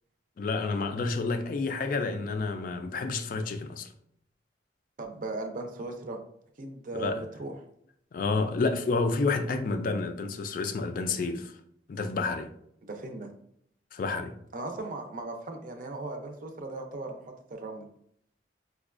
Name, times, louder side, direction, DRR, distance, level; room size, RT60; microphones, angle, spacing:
voice 1, 0.4-3.9 6.9-7.2 8.1-11.5 11.9-12.5 13.9-14.3, left 3 dB, 50° left, 0.3 m, -29 dB
voice 2, 5.0-6.2 6.6-7.5 12.8-13.3 14.5-17.2 17.5-17.9, right 2 dB, 50° right, 0.5 m, -37 dB
4.8 x 2.2 x 2.4 m
head